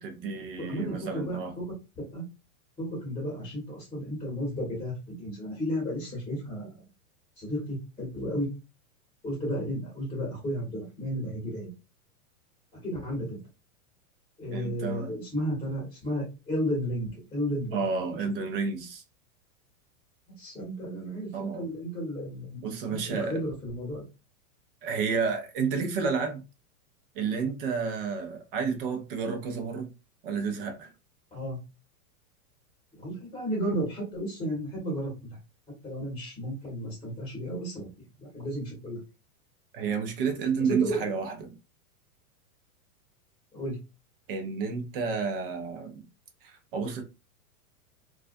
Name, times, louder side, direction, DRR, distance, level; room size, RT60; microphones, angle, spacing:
voice 1, 0.0-1.5 14.5-15.2 17.7-19.0 21.3-21.6 22.6-23.4 24.8-26.4 27.2-29.9 30.2-30.9 39.7-41.6 44.3-46.1 46.4-47.0, right 5 dB, 40° right, 0.5 m, -31 dB
voice 2, 0.6-1.4 2.1-2.2 2.8-6.7 7.4-8.5 9.2-11.7 12.8-13.4 14.4-17.8 20.4-22.6 22.9-24.1 31.3-31.6 33.0-35.4 35.8-37.9 38.2-39.0 40.7-41.1 43.5-43.8, equal, 10° left, 1.1 m, -33 dB
2.3 x 2.3 x 2.5 m
supercardioid pair, 155°, 45 cm